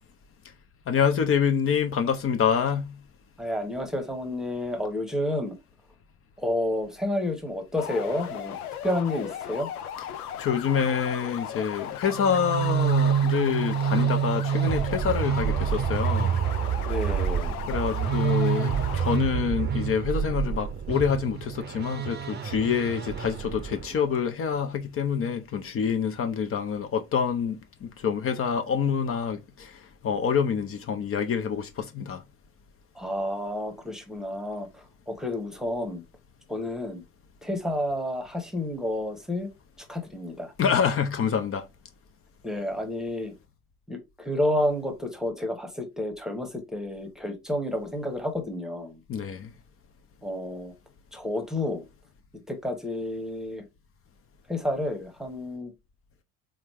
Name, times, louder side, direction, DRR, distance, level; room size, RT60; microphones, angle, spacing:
voice 1, 0.9-3.0 10.4-16.4 17.7-32.2 40.6-41.6 49.1-49.5, left 7 dB, 30° left, 0.6 m, -27 dB
voice 2, 3.4-5.6 6.4-8.6 8.8-9.7 16.9-17.5 32.9-36.0 36.5-37.0 37.4-39.5 39.8-40.5 42.4-43.3 43.9-49.0 50.2-50.7 51.1-51.8 52.5-53.6 54.5-55.7, left 1 dB, ahead, 1.0 m, -30 dB
sound 1, 7.8-19.2, left 9 dB, 80° left, 0.6 m, -37 dB
sound 2, 12.1-24.0, right 8 dB, 25° right, 0.7 m, -27 dB
3.7 x 3.2 x 3.0 m
figure-of-eight pair, 60°, 44 cm